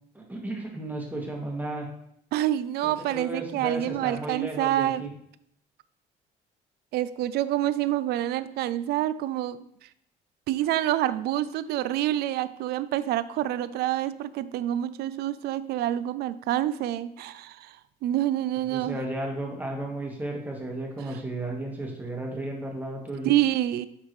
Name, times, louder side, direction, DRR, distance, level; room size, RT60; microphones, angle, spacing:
voice 1, 0.1-1.9 2.8-5.1 18.7-23.3, right 1 dB, 10° right, 0 dB, 1.5 m, -34 dB
voice 2, 2.3-5.1 6.9-9.7 10.5-19.0 23.2-23.9, right 13 dB, 75° right, 15 dB, 0.4 m, -27 dB
9.4 x 3.7 x 3.1 m, 0.72 s
cardioid pair, 110°, 17 cm